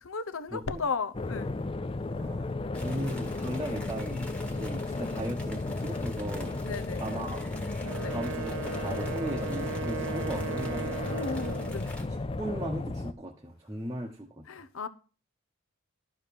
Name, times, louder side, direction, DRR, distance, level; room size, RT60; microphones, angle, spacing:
voice 1, 0.0-1.5 6.6-7.1 8.0-8.1 11.1-11.9 14.5-14.9, left 4 dB, 85° left, 0.8 m, -35 dB
voice 2, 0.5-0.8 2.1-6.6 7.0-7.6 8.1-11.0 12.0-14.4, right 1 dB, 15° right, 0.9 m, -37 dB
sound 1, 1.1-13.1, left 2 dB, 25° left, 0.4 m, -34 dB
sound 2, 2.7-12.1, left 1 dB, 5° left, 1.3 m, -49 dB
Wind instrument woodwind instrument, 7.8-11.8, right 6 dB, 80° right, 0.8 m, -37 dB
12.0 x 4.8 x 6.9 m
head